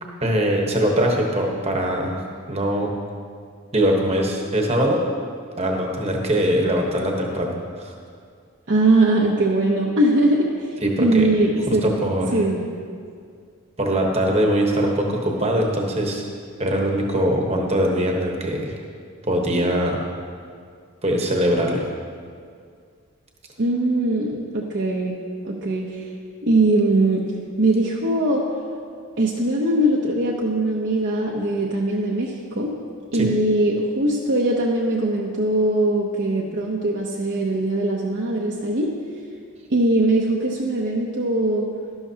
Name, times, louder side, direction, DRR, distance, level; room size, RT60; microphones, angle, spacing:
voice 1, 0.2-2.2 2.5-2.9 3.7-5.1 5.6-7.9 10.8-11.3 11.7-12.3 13.8-16.2 16.6-18.7 19.2-20.0 21.0-21.8 33.1-33.3, equal, 25° right, 0 dB, 1.1 m, -22 dB
voice 2, 8.7-11.9 12.3-12.7 23.6-25.2 25.4-26.1 26.4-27.2 27.6-28.4 29.2-32.7 33.1-38.9 39.7-41.7, right 2 dB, 50° right, -3 dB, 0.8 m, -21 dB
12.5 x 11.5 x 2.8 m, 2.2 s
head